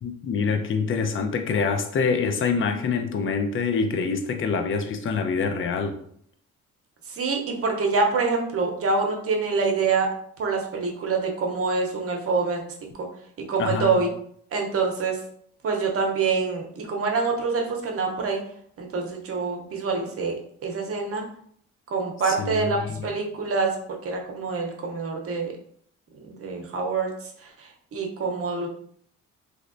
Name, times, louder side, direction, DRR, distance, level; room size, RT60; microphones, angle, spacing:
voice 1, 0.0-6.0 13.6-14.0 22.3-23.1, left 5 dB, 45° left, 6 dB, 0.5 m, -26 dB
voice 2, 7.1-10.1 10.4-12.6 13.0-13.1 13.5-14.1 14.5-15.2 15.6-18.4 18.8-20.3 20.6-21.3 21.9-23.8 24.0-25.5 26.2-27.1 27.4-28.7, right 4 dB, 50° right, 2 dB, 0.8 m, -26 dB
3.1 x 2.7 x 2.6 m, 0.64 s
cardioid pair, 90°, 30 cm